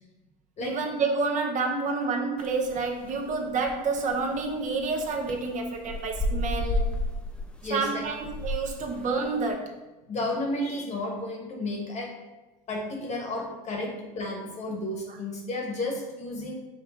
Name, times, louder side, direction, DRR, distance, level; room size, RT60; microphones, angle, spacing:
voice 1, 0.6-6.9 7.7-9.7, right 4 dB, 45° right, 3 dB, 0.6 m, -29 dB
sound 1, 2.4-9.5, left 1 dB, 5° left, 0.6 m, -33 dB
voice 2, 7.6-8.1 10.1-12.2 12.7-16.5, left 2 dB, 40° left, 1 dB, 1.3 m, -32 dB
5.3 x 2.3 x 3.6 m, 1.1 s
hypercardioid pair, 85°, 18 cm